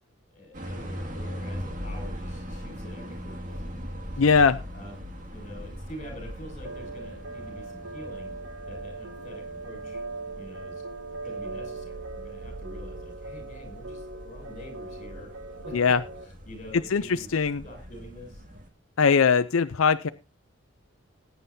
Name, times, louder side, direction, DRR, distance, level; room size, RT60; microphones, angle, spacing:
voice 1, 0.3-3.8 4.1-4.3 4.7-5.0 5.3-8.3 8.7-10.0 10.4-10.8 11.2-15.3 15.6-15.9 16.2-17.3 17.6-18.4, equal, 35° left, 3 dB, 6.4 m, -45 dB
sound 1, 0.5-18.7, equal, 40° right, 2.1 m, -40 dB
voice 2, 4.2-4.6 15.7-16.0 16.9-17.6 19.0-20.1, left 5 dB, 90° left, 11 dB, 0.6 m, -21 dB
sound 2, 6.6-16.2, right 3 dB, 90° right, 1.6 m, -40 dB
20.0 x 9.5 x 2.7 m, 0.28 s
head